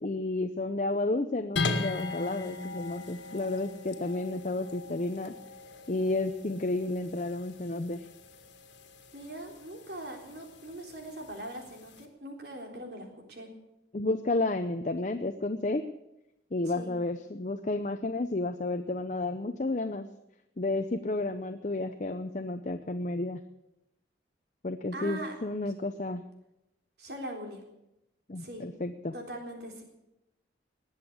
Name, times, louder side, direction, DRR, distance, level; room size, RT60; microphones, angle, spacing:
voice 1, 0.0-5.3 5.9-8.1 13.9-15.9 16.5-20.1 20.6-23.4 24.6-26.2 28.3-29.1, left 2 dB, 40° left, 8 dB, 0.7 m, -31 dB
sound 1, 1.6-12.1, left 3 dB, 70° left, 2.0 m, -39 dB
voice 2, 9.1-13.5 16.6-16.9 24.9-25.4 27.0-27.6 28.4-28.6 29.1-29.8, right 1 dB, 60° right, 2 dB, 3.8 m, -41 dB
20.0 x 8.1 x 8.5 m, 0.88 s
head